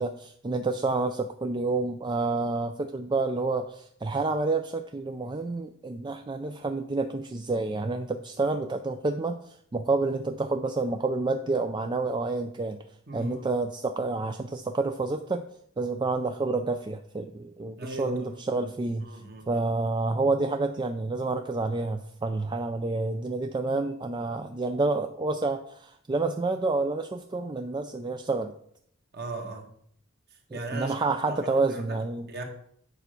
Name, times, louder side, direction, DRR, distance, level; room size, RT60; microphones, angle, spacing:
voice 1, 0.0-12.9 13.1-15.5 15.8-19.2 19.5-28.5 30.5-32.3, right 3 dB, 20° right, 7 dB, 0.3 m, -29 dB
voice 2, 13.1-13.5 17.8-18.4 19.0-19.6 29.1-29.6 30.3-31.0 31.3-32.0 32.3-32.4, right 2 dB, 45° right, 3 dB, 1.5 m, -38 dB
8.4 x 4.4 x 6.5 m, 0.67 s
head